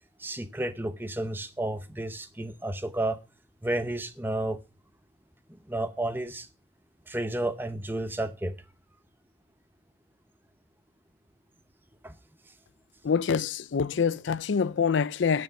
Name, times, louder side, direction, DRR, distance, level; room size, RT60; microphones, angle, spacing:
voice 1, 0.2-3.2 3.6-4.6 5.7-6.5 7.1-8.5 12.0-12.1, right 1 dB, 10° right, 0.7 m, -31 dB
voice 2, 13.0-15.4, left 6 dB, 75° left, 0.4 m, -26 dB
10.5 x 6.7 x 5.7 m
head